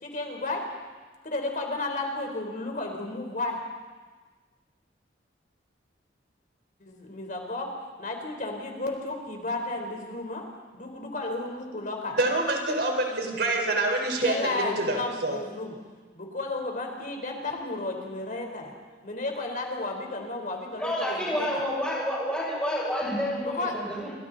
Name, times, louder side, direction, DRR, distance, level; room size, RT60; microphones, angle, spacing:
voice 1, 0.0-0.6 1.2-3.6 6.8-7.7 8.0-10.4 10.7-12.2 14.2-15.8 16.1-18.7 19.0-21.6 23.4-23.7, left 2 dB, 50° left, 2 dB, 4.1 m, -33 dB
voice 2, 12.1-15.4, right 2 dB, 65° right, 2 dB, 4.6 m, -26 dB
voice 3, 20.8-24.1, equal, 5° left, -5 dB, 6.9 m, -29 dB
28.5 x 25.0 x 4.1 m, 1.4 s
head